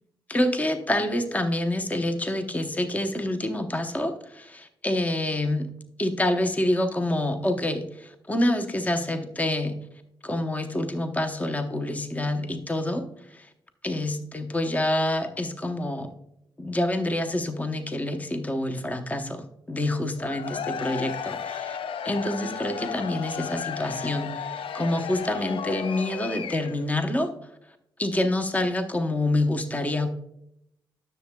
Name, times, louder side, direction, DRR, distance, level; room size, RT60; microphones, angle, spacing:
voice 1, 0.3-5.7 6.0-9.8 10.2-13.0 13.3-13.5 13.8-16.1 16.6-21.8 22.0-27.3 28.0-30.1, left 1 dB, 15° left, 7 dB, 0.8 m, -27 dB
Cheering / Crowd, 20.2-26.9, left 7 dB, 80° left, 0.5 m, -34 dB
10.0 x 6.8 x 2.2 m, 0.77 s
cardioid pair, 95°, 9 cm